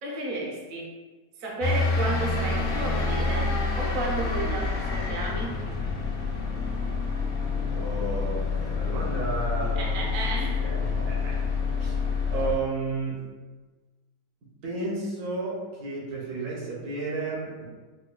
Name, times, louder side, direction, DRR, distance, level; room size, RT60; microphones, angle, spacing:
voice 1, 0.0-0.9 1.4-5.6 9.8-10.7, right 2 dB, 55° right, -3 dB, 0.6 m, -32 dB
sound 1, 1.6-12.6, left 4 dB, 60° left, 1.0 m, -28 dB
voice 2, 7.7-10.1 10.6-11.5 11.8-13.3 14.6-17.7, right 3 dB, 75° right, -4 dB, 1.4 m, -32 dB
5.2 x 2.2 x 2.2 m, 1.3 s
omnidirectional pair, 1.7 m